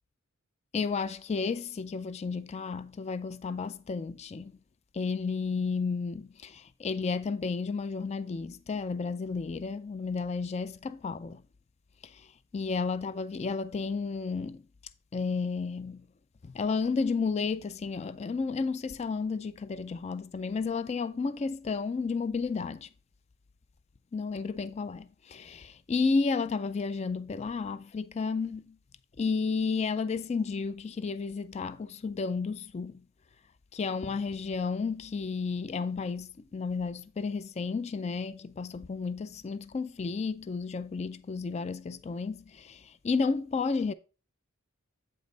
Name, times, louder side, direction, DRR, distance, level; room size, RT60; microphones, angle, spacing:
voice 1, 0.7-4.5 4.9-11.4 12.0-12.2 12.5-14.6 15.1-16.1 16.4-22.9 24.1-28.8 29.2-33.0 33.7-43.9, left 4 dB, 30° left, 0.3 m, -32 dB
8.0 x 5.3 x 3.8 m
head